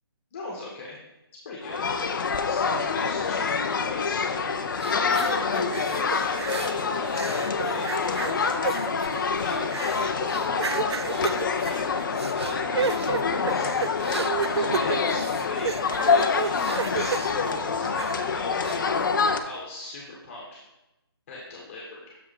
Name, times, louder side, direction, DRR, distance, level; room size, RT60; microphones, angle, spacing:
voice 1, 0.3-1.0 1.4-1.8 2.5-8.7 9.4-12.0 12.3-15.7 16.1-19.0 19.4-20.6 21.3-22.2, left 2 dB, 30° left, -4 dB, 1.6 m, -37 dB
sound 1, 1.6-19.4, left 5 dB, 50° left, 0.6 m, -26 dB
sound 2, 4.8-6.8 7.1-18.3 18.6-18.8, right 5 dB, 90° right, 0.4 m, -32 dB
6.9 x 4.8 x 5.0 m, 0.92 s
hypercardioid pair, 160°, 13 cm